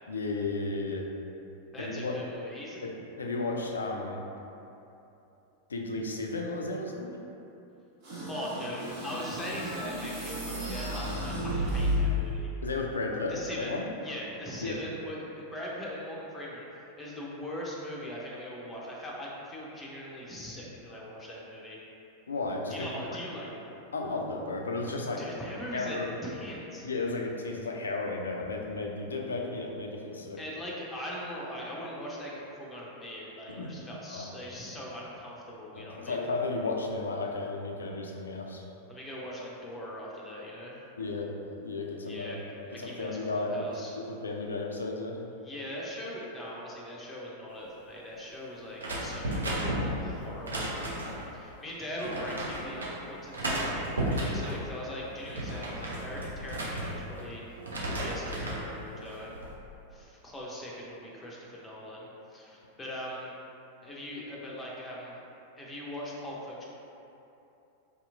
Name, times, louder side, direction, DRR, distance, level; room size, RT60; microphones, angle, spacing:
voice 1, 0.1-1.1 1.8-2.1 2.8-4.2 5.7-7.2 12.6-13.9 14.6-14.8 22.3-23.0 23.9-25.3 25.7-26.1 26.8-30.4 33.5-33.8 34.1-34.3 35.7-38.6 41.0-42.4 42.7-43.7 43.9-45.2, left 3 dB, 70° left, 1 dB, 0.3 m, -34 dB
voice 2, 1.7-2.8 8.3-12.5 13.3-13.8 14.0-21.8 22.7-23.5 25.2-26.9 30.4-36.2 38.9-40.8 42.0-42.4 42.6-44.0 45.4-50.8 51.3-57.6 57.9-59.4 59.9-63.3 63.8-65.2 65.6-66.6, equal, 15° left, -4 dB, 0.6 m, -41 dB
sound 1, 8.0-12.4, left 1 dB, 45° right, 0.9 m, -32 dB
sound 2, 48.8-51.3 52.0-52.9 53.3-54.6 55.1-57.3 57.6-58.7 59.1-59.5, right 1 dB, 75° right, 0.5 m, -33 dB
4.1 x 2.9 x 2.5 m, 2.9 s
figure-of-eight pair, 90°, 0 cm